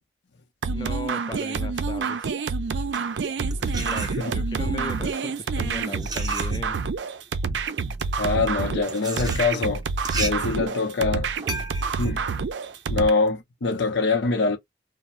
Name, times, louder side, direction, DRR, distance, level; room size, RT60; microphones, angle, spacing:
sound 1, 0.6-13.1, right 4 dB, 75° right, 0.4 m, -28 dB
voice 1, 0.7-2.3 3.6-6.8, left 2 dB, 25° left, 0.4 m, -37 dB
sound 2, 2.7-4.6 5.4-13.3, right 3 dB, 20° right, 0.6 m, -36 dB
voice 2, 8.2-9.8 10.1-11.3 12.0-12.3 12.9-14.6, left 4 dB, 75° left, 0.6 m, -24 dB
2.5 x 2.0 x 3.0 m
head